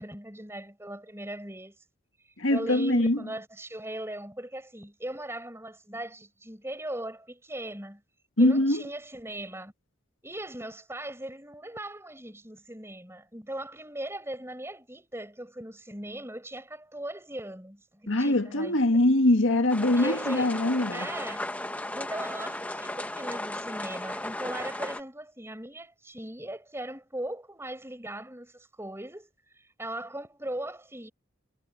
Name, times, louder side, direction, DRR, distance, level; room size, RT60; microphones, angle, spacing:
voice 1, 0.0-1.8 2.3-8.0 8.4-9.7 10.2-18.8 19.9-20.5 20.9-21.4 21.9-31.1, right 1 dB, 10° right, 5.1 m, -39 dB
voice 2, 2.4-3.3 8.4-8.8 18.1-21.1, left 1 dB, 70° left, 1.8 m, -23 dB
sound 1, 19.7-25.0, left 1 dB, 5° left, 0.9 m, -35 dB
head